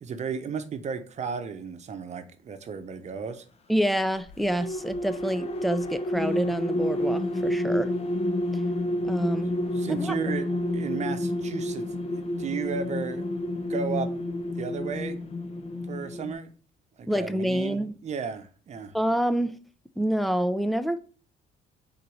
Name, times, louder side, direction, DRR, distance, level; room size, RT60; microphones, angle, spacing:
voice 1, 0.0-3.4 9.7-10.5 10.7-11.9 12.1-13.2 13.7-14.1 14.6-15.2 15.9-16.5 17.0-18.9, right 6 dB, 45° right, 0.9 m, -34 dB
voice 2, 3.7-7.9 9.0-9.5 9.9-10.1 17.1-18.0 18.9-19.6 20.0-21.0, equal, ahead, 0.5 m, -27 dB
sound 1, 4.2-16.3, left 1 dB, 35° left, 0.9 m, -29 dB
4.5 x 4.0 x 5.3 m
cardioid pair, 110°, 17 cm